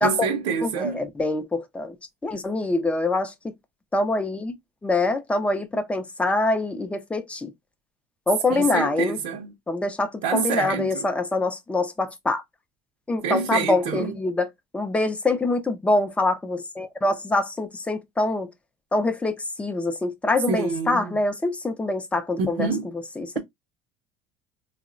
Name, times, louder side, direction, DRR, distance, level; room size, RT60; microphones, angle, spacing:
voice 1, 0.0-1.0 8.5-9.5 10.2-11.1 13.2-14.1 20.5-21.2 22.4-22.9, right 5 dB, 65° right, 0.6 m, -27 dB
voice 2, 0.6-2.0 2.2-3.5 3.9-4.5 4.8-7.5 8.3-9.2 9.7-12.4 13.1-14.5 14.7-18.5 18.9-22.7 23.2-23.4, left 2 dB, 10° left, 0.4 m, -25 dB
3.6 x 2.0 x 2.4 m
cardioid pair, 155°, 14 cm